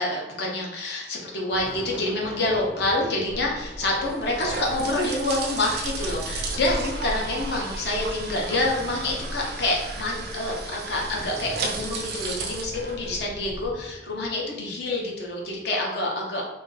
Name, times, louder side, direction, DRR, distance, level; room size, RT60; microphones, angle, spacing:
voice 1, 0.0-16.4, left 2 dB, 60° left, -2 dB, 0.6 m, -27 dB
Thunder, 1.1-15.8, equal, 10° left, 0.5 m, -45 dB
sound 1, 3.3-13.7, right 2 dB, 60° right, 0.4 m, -33 dB
2.4 x 2.3 x 3.8 m, 0.95 s
head